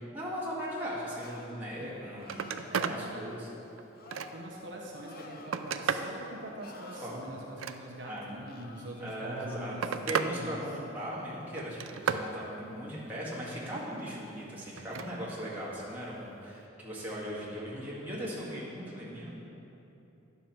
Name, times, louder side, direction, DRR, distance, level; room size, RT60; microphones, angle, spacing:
voice 1, 0.0-3.5 7.0-7.2 8.1-8.3 9.0-9.7 10.1-19.4, equal, 10° right, -8 dB, 2.0 m, -38 dB
sound 1, 1.2-1.7 2.2-2.8 3.9-4.5 5.0-5.9 6.6-7.1 8.5-9.0, left 3 dB, 50° left, 0.6 m, -50 dB
Telephone, 1.8-1.9 2.2-3.0 3.5-4.6 5.1-6.2 7.4-8.2 9.2-10.3 10.7-11.2 11.6-12.3 14.8-15.1 16.5-16.6, right 6 dB, 85° right, 0.4 m, -34 dB
voice 2, 2.7-3.3 4.3-10.6, right 1 dB, 65° right, -2 dB, 1.0 m, -43 dB
10.5 x 7.0 x 4.5 m, 3.0 s
head